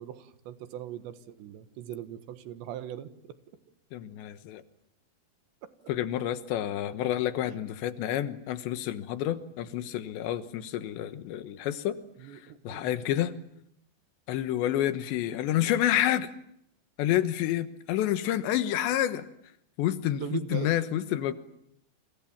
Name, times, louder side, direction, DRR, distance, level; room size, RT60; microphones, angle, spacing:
voice 1, 0.0-3.4 12.2-12.9 20.2-20.7, right 10 dB, 85° right, 11 dB, 3.8 m, -39 dB
voice 2, 3.9-4.6 5.9-12.0 12.7-13.3 14.3-16.3 17.0-19.2 19.8-21.3, left 12 dB, 90° left, 11 dB, 3.6 m, -29 dB
29.5 x 26.0 x 7.4 m, 0.75 s
omnidirectional pair, 4.9 m